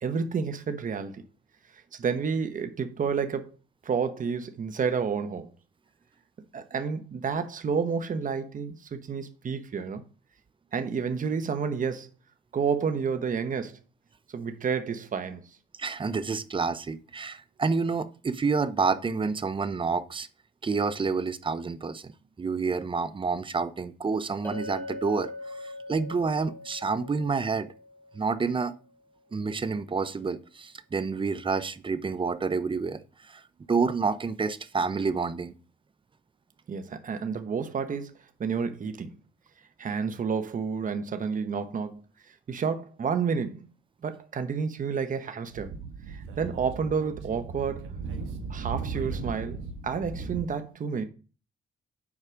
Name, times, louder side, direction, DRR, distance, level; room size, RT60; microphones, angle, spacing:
voice 1, 0.0-1.2 2.0-3.5 3.8-5.5 6.5-10.0 10.7-12.1 12.5-13.8 14.3-15.4 36.7-38.1 38.4-39.1 39.8-42.0 42.5-43.7 44.0-45.7 46.1-47.9 48.5-51.0, right 6 dB, 40° right, 1.1 m, -30 dB
voice 2, 15.8-20.3 20.6-22.1 22.4-27.7 28.1-28.7 29.3-33.0 33.3-33.4 33.7-35.5, right 4 dB, 25° right, 0.7 m, -28 dB
Chink clink, 24.4-28.7, left 2 dB, 10° left, 2.5 m, -42 dB
Speech / Wind, 45.5-50.4, right 4 dB, 90° right, 1.2 m, -36 dB
7.4 x 4.9 x 5.0 m
cardioid pair, 90°, 20 cm